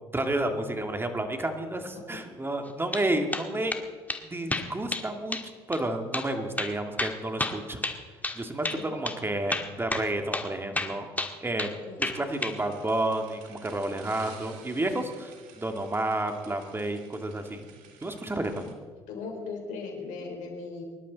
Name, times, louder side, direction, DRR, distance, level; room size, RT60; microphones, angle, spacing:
voice 1, 0.1-3.8 4.2-5.4 5.7-7.8 8.3-11.1 11.4-17.7 18.0-18.7, right 1 dB, 15° right, 5 dB, 2.2 m, -31 dB
sound 1, 2.7-3.1 3.3-3.8 4.1-4.2 4.5-5.1 5.3-5.5 5.7-5.8 6.1-6.3 6.6-8.4 8.6-8.8 9.1-9.2 9.5-10.5 10.8-11.7 12.0-12.6, left 2 dB, 10° left, 1.7 m, -31 dB
voice 2, 8.6-8.9 11.9-12.1 18.4-18.7 19.1-20.8, left 4 dB, 65° left, 2 dB, 4.2 m, -38 dB
sound 2, 12.2-18.7, right 7 dB, 75° right, 1.9 m, -52 dB
24.0 x 11.5 x 4.1 m, 1.5 s
hypercardioid pair, 65°, 14 cm